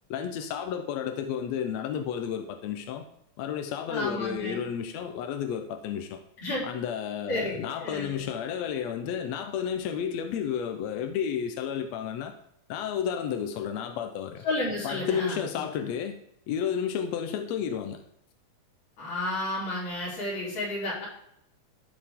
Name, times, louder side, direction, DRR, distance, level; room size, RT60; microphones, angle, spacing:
voice 1, 0.1-3.0 3.4-6.2 6.6-12.3 12.7-14.4 14.8-16.2 16.5-18.0, left 8 dB, 75° left, 6 dB, 1.6 m, -32 dB
voice 2, 3.9-4.6 6.4-6.6 7.3-8.2 14.4-15.4 19.0-21.1, left 1 dB, 55° left, -7 dB, 4.4 m, -31 dB
14.0 x 5.0 x 3.6 m, 0.75 s
omnidirectional pair, 3.6 m